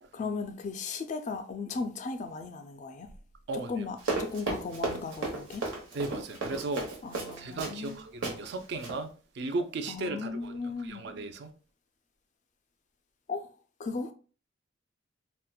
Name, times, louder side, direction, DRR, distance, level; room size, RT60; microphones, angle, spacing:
voice 1, 0.1-3.1 3.5-5.6 7.0-8.0 9.9-11.1 13.3-13.5 13.8-14.1, left 4 dB, 40° left, 0.3 m, -36 dB
voice 2, 3.5-3.9 5.9-6.9 7.4-9.1 9.3-11.5, right 2 dB, 60° right, 0.4 m, -36 dB
Run, 4.0-7.9 8.2-8.4 8.7-9.0, right 3 dB, 85° right, 1.0 m, -34 dB
4.2 x 2.1 x 2.2 m
head